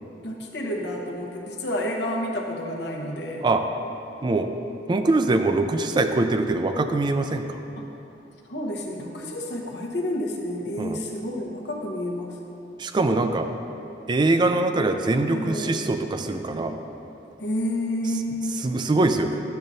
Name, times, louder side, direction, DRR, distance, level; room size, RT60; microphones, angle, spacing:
voice 1, 0.2-3.4 7.8-7.9 8.5-12.3 15.3-15.8 17.4-18.6, left 1 dB, 65° left, 0 dB, 0.9 m, -30 dB
voice 2, 4.9-7.6 10.8-11.0 12.8-13.5 14.1-16.8 18.6-19.4, right 2 dB, 25° right, 7 dB, 0.3 m, -23 dB
10.5 x 7.4 x 2.7 m, 2.9 s
head